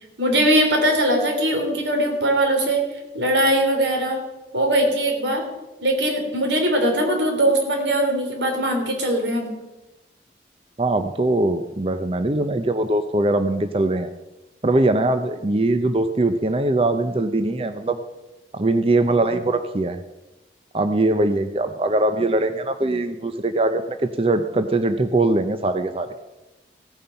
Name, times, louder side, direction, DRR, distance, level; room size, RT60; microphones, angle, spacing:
voice 1, 0.2-2.8 3.1-4.2 4.5-5.4 5.8-9.5, right 1 dB, 85° right, 2 dB, 3.4 m, -20 dB
voice 2, 10.8-14.1 14.6-18.0 18.5-20.0 20.7-26.1, right 2 dB, 30° right, 9 dB, 0.6 m, -21 dB
16.0 x 9.2 x 5.7 m, 1.0 s
head